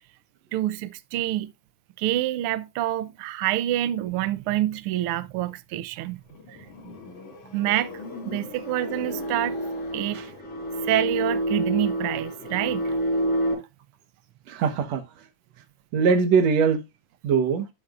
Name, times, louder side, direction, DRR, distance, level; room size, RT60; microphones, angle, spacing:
voice 1, 0.5-1.5 2.0-6.2 6.5-6.6 7.5-7.9 8.2-9.6 9.9-10.2 10.8-13.0, right 14 dB, 90° right, 1.2 m, -27 dB
sound 1, 5.9-11.3, left 4 dB, 80° left, 3.8 m, -43 dB
sound 2, 7.6-13.5, right 1 dB, 20° left, 4.8 m, -29 dB
voice 2, 14.5-15.0 15.9-16.8 17.2-17.7, right 5 dB, 65° right, 2.4 m, -21 dB
12.0 x 8.0 x 2.5 m
omnidirectional pair, 3.4 m